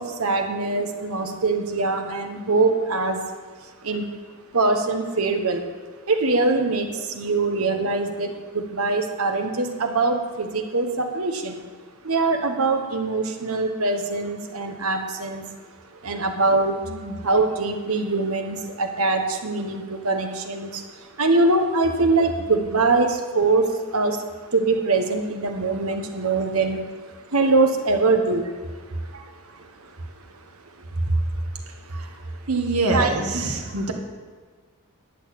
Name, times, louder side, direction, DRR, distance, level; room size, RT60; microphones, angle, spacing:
voice 1, 0.0-3.3 3.8-4.1 4.5-5.6 6.1-11.6 12.0-15.4 16.0-16.8 17.2-24.2 24.5-26.9 27.3-28.5 29.6-29.7 31.9-32.1 32.9-33.9, right 3 dB, 75° right, 5 dB, 1.4 m, -23 dB
voice 2, 16.9-17.2 29.1-29.2 31.1-31.2 32.5-33.9, right 2 dB, 90° right, 2 dB, 1.8 m, -25 dB
11.0 x 6.5 x 8.7 m, 1.5 s
head